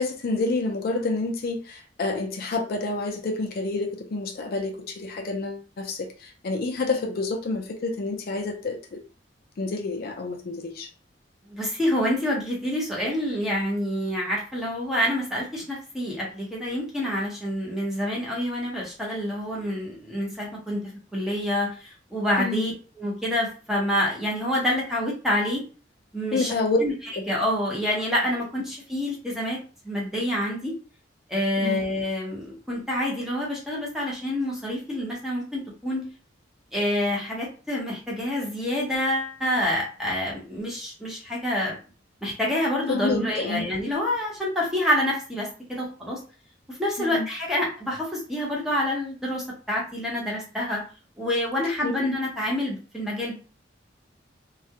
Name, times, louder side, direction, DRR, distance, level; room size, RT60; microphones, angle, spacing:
voice 1, 0.0-9.0 9.6-10.9 22.4-22.7 26.3-26.8 31.6-31.8 42.9-43.7 47.0-47.3 51.8-51.9, left 3 dB, 55° left, 2 dB, 0.4 m, -28 dB
voice 2, 11.5-20.8 21.1-22.7 23.0-25.6 26.1-26.5 26.8-26.9 27.3-29.6 29.8-30.7 31.3-36.0 36.7-41.8 42.2-46.2 46.7-50.8 51.2-53.3, left 1 dB, 5° right, -4 dB, 0.8 m, -27 dB
2.3 x 2.0 x 2.8 m, 0.36 s
head